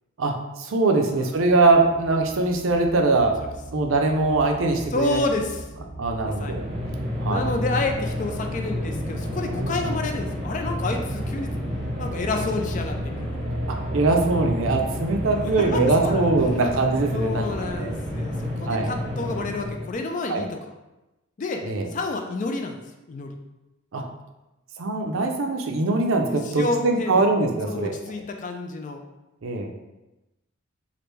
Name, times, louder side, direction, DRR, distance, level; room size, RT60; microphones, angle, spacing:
voice 1, 0.2-3.3 3.7-5.2 6.0-6.7 7.2-7.5 9.5-9.8 13.7-17.9 18.7-18.9 20.3-20.4 21.6-21.9 23.9-24.0 24.8-27.9 29.4-29.7, right 3 dB, 75° right, 3 dB, 0.5 m, -22 dB
voice 2, 1.0-1.3 4.9-5.6 6.2-6.6 7.2-11.5 12.0-13.4 15.2-16.3 17.1-20.6 21.4-21.6 21.9-22.8 23.1-23.4 26.3-27.3 27.7-29.0, left 3 dB, 40° left, 4 dB, 0.3 m, -29 dB
sound 1, 1.3-18.2, right 2 dB, 75° left, 1.5 m, -37 dB
sound 2, 6.2-20.0, left 1 dB, 35° right, 0.7 m, -30 dB
3.3 x 2.5 x 3.1 m, 1.0 s
head